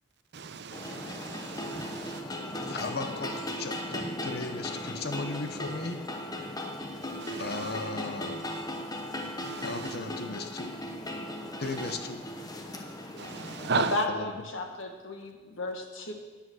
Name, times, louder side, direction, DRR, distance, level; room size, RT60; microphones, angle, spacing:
voice 1, 0.3-2.2 7.0-7.7 9.4-10.0 11.6-12.0 13.2-14.0, right 5 dB, 55° right, 10 dB, 0.7 m, -36 dB
sound 1, 0.7-13.8, left 1 dB, 20° left, 1.0 m, -37 dB
voice 2, 1.9-2.3 2.7-3.3 3.6-6.0 7.4-8.4 9.6-10.8 11.6-12.3 14.1-14.3, left 3 dB, 50° left, 8 dB, 0.8 m, -36 dB
voice 3, 13.8-16.1, left 2 dB, 70° left, 4 dB, 1.6 m, -33 dB
9.9 x 8.6 x 6.3 m, 1.3 s
head